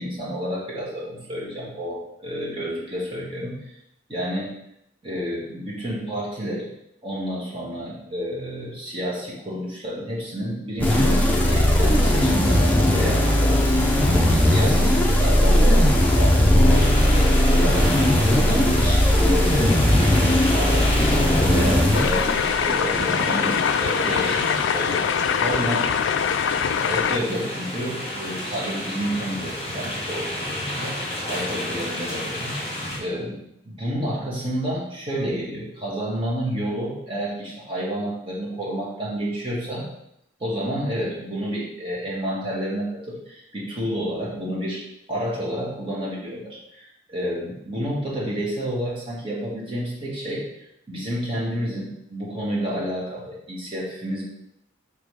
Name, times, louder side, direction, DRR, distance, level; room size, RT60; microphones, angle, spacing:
voice 1, 0.0-3.6 4.1-4.6 5.0-6.7 7.0-17.9 18.2-22.3 22.5-25.8 26.8-31.0 31.3-32.5 33.0-39.9 40.4-54.2, equal, 30° right, -6 dB, 1.8 m, -30 dB
sound 1, 10.8-22.7, left 1 dB, 10° left, 0.7 m, -18 dB
sound 2, 16.7-33.0, left 1 dB, 30° left, 1.9 m, -31 dB
sound 3, 21.9-27.2, left 7 dB, 80° left, 0.3 m, -23 dB
5.4 x 3.8 x 4.9 m, 0.79 s
head